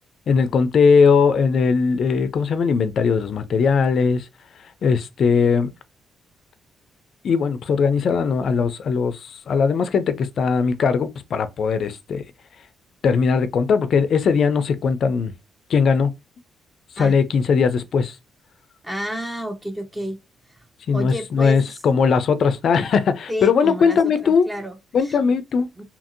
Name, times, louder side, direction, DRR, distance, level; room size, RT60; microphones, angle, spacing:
voice 1, 0.3-4.3 4.8-5.7 7.2-12.2 13.0-15.3 15.7-16.1 17.0-18.2 20.9-24.5 24.9-25.7, left 5 dB, 60° left, 0.4 m, -19 dB
voice 2, 18.8-20.2 20.5-20.6 20.9-21.8 23.3-25.2 25.8-25.9, equal, 10° right, 0.7 m, -30 dB
2.8 x 2.6 x 2.5 m
cardioid pair, 90°, 0 cm